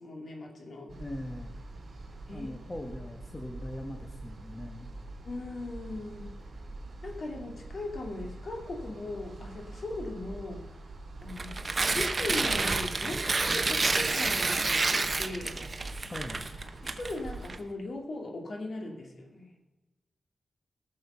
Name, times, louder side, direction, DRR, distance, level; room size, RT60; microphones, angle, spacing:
voice 1, 0.0-0.9 2.3-2.5 5.2-6.3 7.0-10.6 11.2-11.5 11.9-15.6 16.8-19.5, left 2 dB, 55° left, 2 dB, 2.4 m, -38 dB
voice 2, 0.9-1.6 2.3-4.9 16.1-16.4, left 1 dB, 20° left, 3 dB, 1.1 m, -40 dB
sound 1, 0.9-17.6, right 2 dB, 50° right, 3.2 m, -45 dB
Tearing, 11.3-17.6, right 3 dB, 35° right, 0.8 m, -29 dB
18.0 x 6.7 x 5.5 m, 1.1 s
wide cardioid pair, 100°, 0 cm